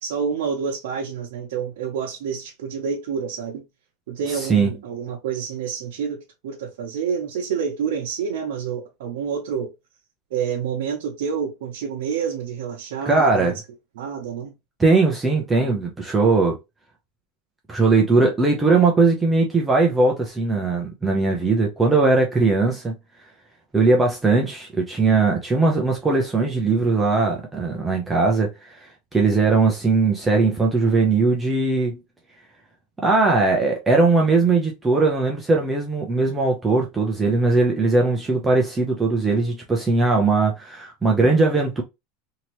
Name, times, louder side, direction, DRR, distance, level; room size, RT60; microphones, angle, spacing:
voice 1, 0.0-3.6 4.1-9.7 10.3-13.5 14.0-14.5, right 7 dB, 85° right, 0.8 m, -28 dB
voice 2, 4.3-4.7 13.1-13.6 14.8-16.6 17.7-23.0 23.7-32.0 33.0-41.8, right 3 dB, 10° right, 0.5 m, -19 dB
2.9 x 2.8 x 3.0 m
supercardioid pair, 160°, 0 cm